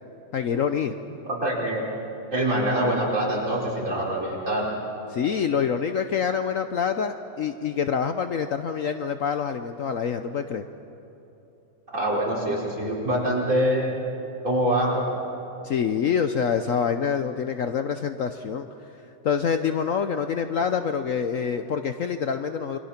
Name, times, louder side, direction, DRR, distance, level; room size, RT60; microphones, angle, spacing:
voice 1, 0.3-0.9 5.1-10.6 15.6-18.7 19.2-22.8, left 7 dB, 90° left, 8 dB, 0.7 m, -26 dB
voice 2, 1.2-1.8 2.3-4.7 11.9-13.9 14.4-15.0, right 1 dB, 35° right, -3 dB, 5.3 m, -24 dB
29.0 x 24.0 x 5.9 m, 3.0 s
omnidirectional pair, 2.4 m